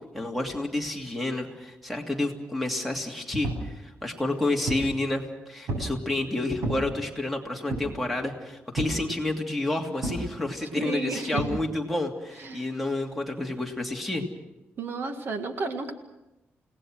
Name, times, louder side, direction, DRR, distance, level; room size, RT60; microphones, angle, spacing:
voice 1, 0.1-14.2, left 2 dB, ahead, 3 dB, 2.7 m, -30 dB
sound 1, 3.4-3.7 4.3-4.9 5.7-6.0 6.6-6.9 7.7-8.0 8.8-9.0 10.0-10.3 11.4-11.6, right 2 dB, 90° right, 7.3 m, -31 dB
voice 2, 10.8-11.4 12.4-12.7 14.8-15.9, right 3 dB, 60° right, 7 dB, 1.9 m, -32 dB
30.0 x 18.5 x 6.4 m, 0.96 s
wide cardioid pair, 140°, 4 cm